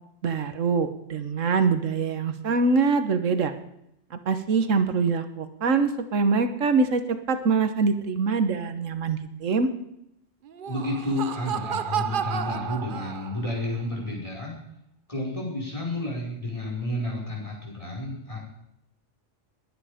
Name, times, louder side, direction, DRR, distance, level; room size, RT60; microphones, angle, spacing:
voice 1, 0.0-3.5 4.1-9.7, right 4 dB, 85° right, 9 dB, 1.5 m, -24 dB
Laughter, 10.5-13.6, right 8 dB, 50° right, 0.7 m, -31 dB
voice 2, 10.7-14.5 15.1-18.4, left 1 dB, 25° left, -3 dB, 5.1 m, -31 dB
21.5 x 9.5 x 5.0 m, 0.79 s
omnidirectional pair, 1.3 m